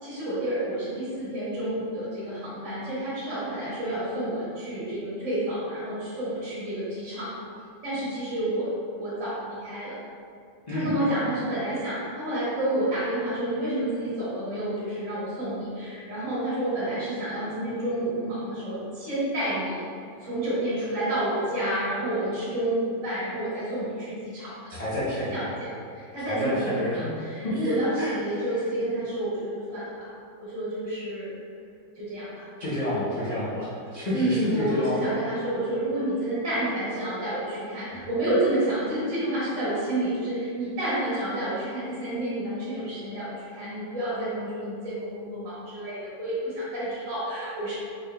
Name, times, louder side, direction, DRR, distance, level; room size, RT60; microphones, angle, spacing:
voice 1, 0.0-7.3 7.8-9.9 10.7-19.8 20.2-24.5 25.3-30.1 30.4-31.3 32.0-32.5 32.9-33.1 34.1-47.7, right 1 dB, 50° right, -11 dB, 1.5 m, -29 dB
voice 2, 10.7-11.0 24.7-25.5 26.2-27.2 27.4-28.6 32.6-35.0, left 1 dB, 75° left, -11 dB, 0.3 m, -29 dB
4.1 x 3.2 x 2.2 m, 2.4 s
omnidirectional pair, 1.9 m